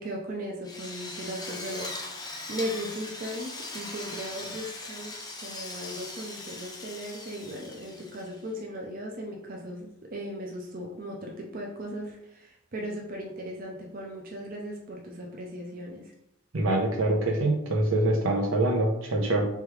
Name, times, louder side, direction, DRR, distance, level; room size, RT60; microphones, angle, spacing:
voice 1, 0.0-16.1, equal, 45° right, 0 dB, 0.5 m, -37 dB
Drill, 0.6-8.5, left 2 dB, 20° left, 0.6 m, -40 dB
voice 2, 16.5-19.5, right 1 dB, 80° right, 0 dB, 0.8 m, -25 dB
3.5 x 3.3 x 3.2 m, 0.80 s
head